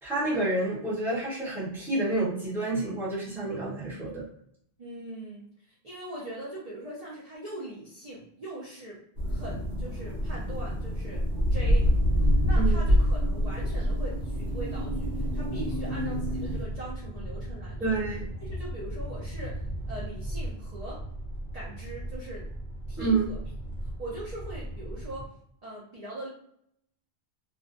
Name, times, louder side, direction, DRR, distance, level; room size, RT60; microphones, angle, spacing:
voice 1, 0.0-4.2 12.6-12.9 17.8-18.3 23.0-23.3, right 2 dB, ahead, -8 dB, 0.7 m, -29 dB
voice 2, 4.8-9.0 9.3-11.2 11.5-11.9 12.2-18.0 18.4-19.6 19.9-21.0 21.5-22.5 22.9-23.4 24.0-25.3 25.6-26.3, right 1 dB, 45° right, -6 dB, 0.6 m, -41 dB
sound 1, 9.2-16.6, equal, 75° right, 0.9 m, -26 dB
sound 2, 9.3-25.3, right 1 dB, 55° left, 0.7 m, -37 dB
2.5 x 2.1 x 2.5 m, 0.71 s
omnidirectional pair, 1.2 m